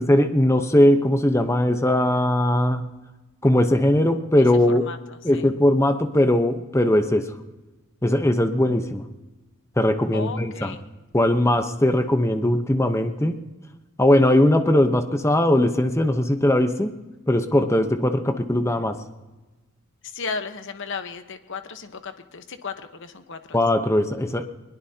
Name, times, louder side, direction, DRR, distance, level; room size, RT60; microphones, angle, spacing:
voice 1, 0.0-2.9 3.4-4.9 5.2-7.3 8.0-9.0 9.8-10.7 11.1-13.4 14.0-17.0 17.3-19.0 23.5-24.4, left 1 dB, 15° left, 7 dB, 0.9 m, -20 dB
voice 2, 4.7-5.0 5.3-5.4 10.1-10.9 20.0-23.6, left 4 dB, 60° left, 8 dB, 1.1 m, -34 dB
21.5 x 21.0 x 2.9 m, 1.2 s
head